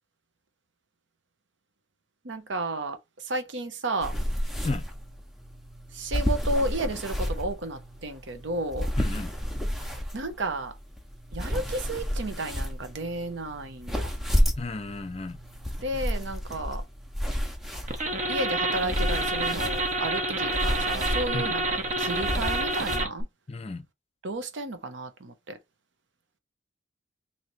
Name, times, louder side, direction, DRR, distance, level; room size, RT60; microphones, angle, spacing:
voice 1, 2.2-4.1 5.9-8.9 10.1-10.7 11.3-14.1 15.8-16.8 18.3-23.3 24.2-25.6, right 2 dB, 85° right, 0.8 m, -32 dB
sound 1, 4.0-23.0, equal, ahead, 0.7 m, -31 dB
voice 2, 9.0-9.3 14.6-15.4 21.3-21.5 23.5-23.8, left 3 dB, 35° left, 0.5 m, -33 dB
sound 2, 17.9-23.2, right 2 dB, 40° right, 0.9 m, -28 dB
3.0 x 2.8 x 4.1 m
head